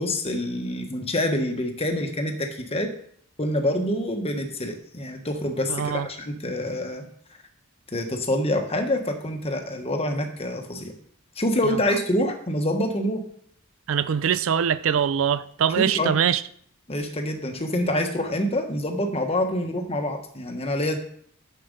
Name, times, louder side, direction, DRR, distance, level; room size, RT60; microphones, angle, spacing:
voice 1, 0.0-2.9 3.4-7.0 7.9-10.9 11.4-13.2 15.8-16.1 16.9-21.0, left 1 dB, 30° left, 1.2 m, -26 dB
voice 2, 5.7-6.1 13.9-16.4, right 8 dB, 70° right, 0.4 m, -23 dB
7.6 x 7.2 x 5.3 m
head